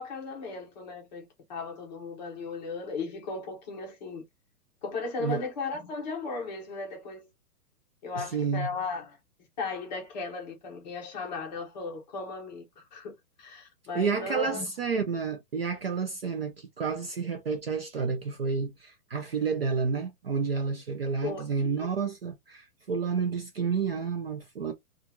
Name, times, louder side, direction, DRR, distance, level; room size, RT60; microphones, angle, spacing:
voice 1, 0.0-4.2 4.8-7.3 8.0-9.2 9.6-13.1 13.4-14.7 21.2-21.9, left 4 dB, 30° left, 0.9 m, -36 dB
voice 2, 8.1-8.7 13.9-24.7, right 5 dB, 40° right, 0.4 m, -30 dB
2.8 x 2.5 x 2.5 m
hypercardioid pair, 160°, 47 cm